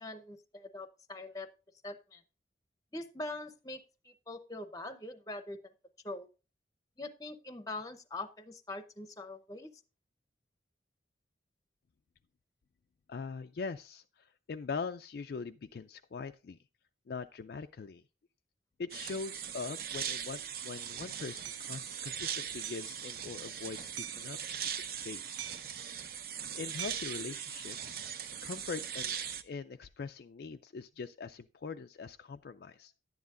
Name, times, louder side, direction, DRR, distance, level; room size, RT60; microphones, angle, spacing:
voice 1, 0.0-1.5 1.8-2.2 2.9-5.6 6.0-6.3 7.0-9.7, left 2 dB, 20° left, 10 dB, 0.7 m, -43 dB
voice 2, 13.1-16.6 17.1-18.0 18.8-25.4 26.5-28.0 28.4-29.2 29.4-32.9, left 4 dB, 55° left, 7 dB, 0.4 m, -42 dB
sound 1, 18.9-29.4, right 8 dB, 50° right, 0.7 m, -40 dB
Hammer, 21.4-21.7 22.6-22.9 24.0-24.3 25.4-25.8 26.8-27.2, right 13 dB, 75° right, 0.3 m, -44 dB
11.0 x 9.5 x 2.5 m, 0.31 s
head